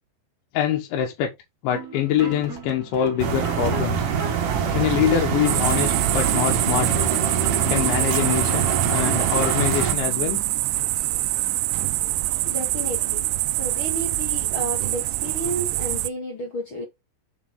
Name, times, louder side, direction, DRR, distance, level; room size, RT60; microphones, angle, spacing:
voice 1, 0.5-1.3 1.6-4.1 4.7-6.9 7.7-10.4, left 10 dB, 75° left, 3.4 m, -24 dB
sound 1, 1.7-9.7, right 3 dB, 35° right, 1.4 m, -38 dB
sound 2, 3.2-9.9, right 7 dB, 60° right, 2.4 m, -24 dB
sound 3, 5.5-16.1, right 18 dB, 90° right, 2.4 m, -25 dB
voice 2, 12.4-13.2 13.5-16.8, right 1 dB, 50° left, 1.6 m, -31 dB
7.3 x 7.1 x 3.7 m
omnidirectional pair, 5.6 m